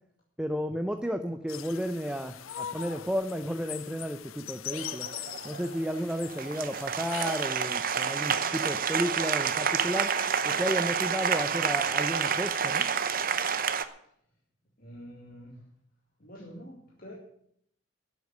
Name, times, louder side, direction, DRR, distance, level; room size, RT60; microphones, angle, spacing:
voice 1, 0.4-5.1 5.4-10.1 10.4-12.9, equal, 5° right, 7 dB, 0.6 m, -32 dB
sound 1, 1.5-7.5, left 11 dB, 85° left, 0.5 m, -41 dB
Applause, 4.7-13.8, right 7 dB, 45° right, 0.8 m, -29 dB
voice 2, 14.8-15.7 16.2-17.1, equal, 45° left, -3 dB, 2.3 m, -46 dB
12.0 x 8.2 x 9.5 m, 0.70 s
head